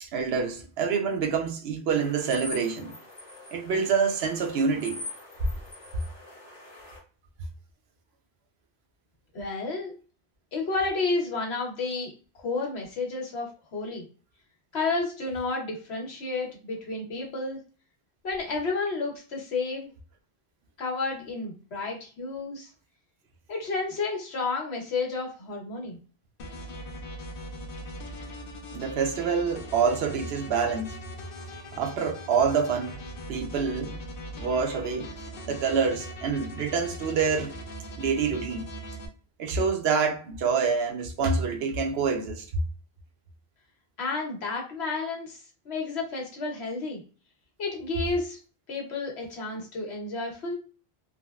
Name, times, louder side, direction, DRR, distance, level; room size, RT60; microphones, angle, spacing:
voice 1, 0.0-2.9 3.5-5.0 28.7-31.0 31.7-33.0 33.3-34.0 34.4-35.1 35.5-37.6 38.0-38.7 39.4-42.4, right 5 dB, 75° right, 0.9 m, -26 dB
sound 1, 1.9-7.0, left 2 dB, 40° left, 1.1 m, -43 dB
voice 2, 9.3-10.0 10.5-12.1 12.4-14.0 14.7-17.6 18.2-19.9 20.8-22.7 23.5-26.0 44.0-47.0 47.6-48.4 48.7-50.6, left 3 dB, 80° left, 1.2 m, -31 dB
sound 2, 26.4-39.1, equal, 60° left, 0.8 m, -40 dB
3.5 x 2.1 x 2.3 m
omnidirectional pair, 1.1 m